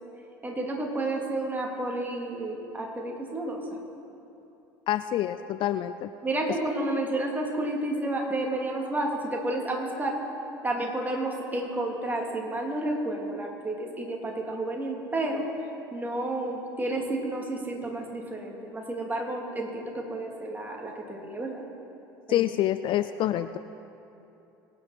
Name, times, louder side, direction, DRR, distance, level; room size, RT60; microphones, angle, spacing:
voice 1, 0.4-3.6 6.2-10.2 10.6-15.4 15.9-21.6 22.3-22.5, right 2 dB, 15° right, 0 dB, 3.0 m, -31 dB
voice 2, 4.9-6.1 22.3-23.6, left 12 dB, 45° left, 12 dB, 0.4 m, -27 dB
23.5 x 9.6 x 4.4 m, 2.8 s
hypercardioid pair, 70°, 11 cm